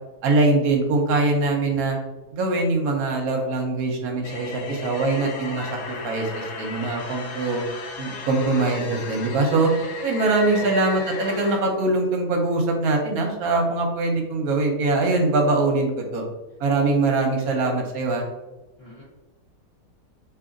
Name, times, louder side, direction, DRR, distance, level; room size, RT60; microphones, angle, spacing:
voice 1, 0.2-2.0 2.3-7.6 8.0-9.7 10.0-16.2 16.6-18.2, right 2 dB, 65° right, 2 dB, 1.1 m, -22 dB
sound 1, 4.2-11.6, left 4 dB, 85° left, 1.2 m, -35 dB
voice 2, 10.5-10.8 16.8-17.0 18.8-19.0, left 1 dB, 50° left, -7 dB, 0.8 m, -41 dB
3.6 x 3.1 x 2.4 m, 1.1 s
omnidirectional pair, 1.8 m